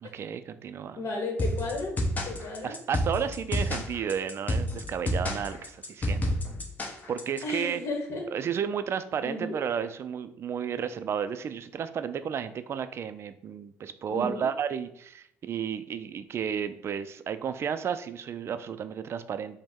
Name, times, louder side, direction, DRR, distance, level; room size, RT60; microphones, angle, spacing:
voice 1, 0.0-1.0 2.6-6.4 7.1-7.8 8.3-19.6, right 7 dB, 50° right, 11 dB, 0.4 m, -32 dB
voice 2, 0.9-1.9 2.2-2.7 7.4-8.2 9.2-9.6 14.1-14.5, left 2 dB, 55° left, 1 dB, 1.3 m, -33 dB
sound 1, 1.4-7.4, left 1 dB, 30° left, 0.9 m, -29 dB
5.0 x 2.1 x 3.6 m, 0.70 s
supercardioid pair, 75°, 6 cm